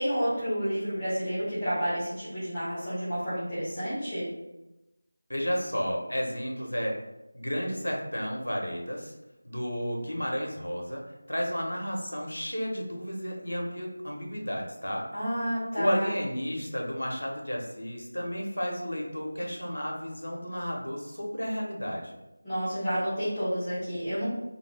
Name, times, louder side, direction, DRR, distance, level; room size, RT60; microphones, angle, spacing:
voice 1, 0.0-4.3 15.1-16.1 22.4-24.3, equal, 10° left, -15 dB, 1.0 m, -30 dB
voice 2, 5.3-7.0 7.3-9.1 9.4-11.0 11.3-15.1 15.8-22.2, equal, 70° left, 0 dB, 0.8 m, -32 dB
2.6 x 2.5 x 3.3 m, 0.96 s
figure-of-eight pair, 165°, 0 cm